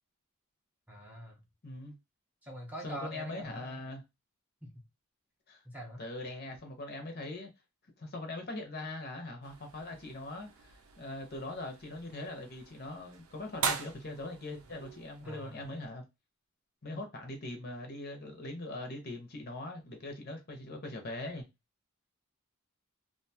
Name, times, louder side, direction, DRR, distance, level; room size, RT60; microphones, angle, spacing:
voice 1, 0.9-1.4 2.4-3.8 4.6-4.8 5.6-6.0 15.2-15.7, equal, 5° right, 0.6 m, -45 dB
voice 2, 1.6-1.9 2.8-4.0 5.5-5.6 6.0-7.5 8.0-16.0 16.8-21.5, left 2 dB, 45° left, 0.7 m, -41 dB
sound 1, 9.4-15.9, right 6 dB, 75° right, 0.5 m, -42 dB
2.5 x 2.3 x 2.7 m
head